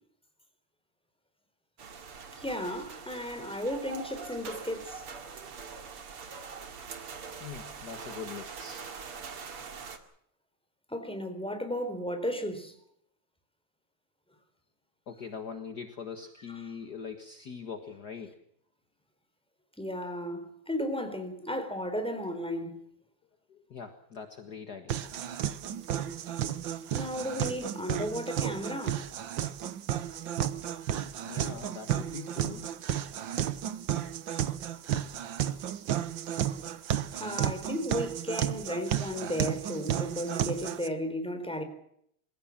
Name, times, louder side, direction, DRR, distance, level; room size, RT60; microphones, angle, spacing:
sound 1, 1.8-10.0, right 5 dB, 80° right, 3.1 m, -43 dB
voice 1, 2.4-5.0 10.9-12.7 16.5-16.6 19.8-22.8 26.9-29.1 37.1-41.6, equal, ahead, 4.0 m, -34 dB
voice 2, 7.4-8.8 15.1-18.4 23.5-25.0 31.3-32.7, left 6 dB, 50° left, 2.0 m, -42 dB
sound 2, 24.9-40.9, right 10 dB, 65° right, 1.7 m, -33 dB
27.0 x 16.5 x 7.4 m
omnidirectional pair, 2.4 m